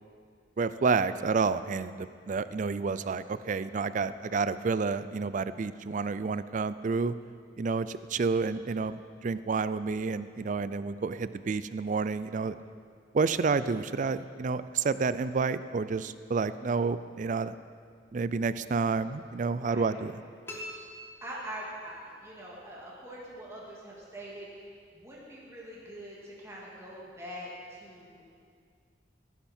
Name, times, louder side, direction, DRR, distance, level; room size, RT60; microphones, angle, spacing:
voice 1, 0.6-7.1 7.6-12.6 13.1-17.6 18.1-20.1, right 4 dB, 45° right, 14 dB, 0.4 m, -29 dB
voice 2, 19.6-20.0 21.2-28.3, right 1 dB, 15° right, -5 dB, 2.1 m, -44 dB
sound 1, 20.5-22.0, left 1 dB, 15° left, 1.7 m, -44 dB
17.5 x 10.0 x 4.4 m, 2.2 s
head